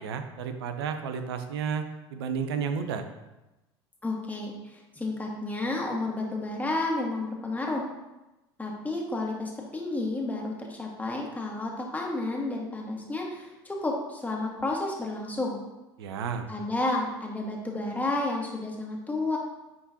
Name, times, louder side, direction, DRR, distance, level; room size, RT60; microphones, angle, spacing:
voice 1, 0.0-3.1 16.0-16.5, right 6 dB, 75° right, 8 dB, 0.7 m, -32 dB
voice 2, 4.0-7.8 8.6-15.6 16.5-19.4, left 2 dB, 10° left, -2 dB, 1.7 m, -31 dB
9.6 x 3.8 x 2.8 m, 0.99 s
hypercardioid pair, 75°, 13 cm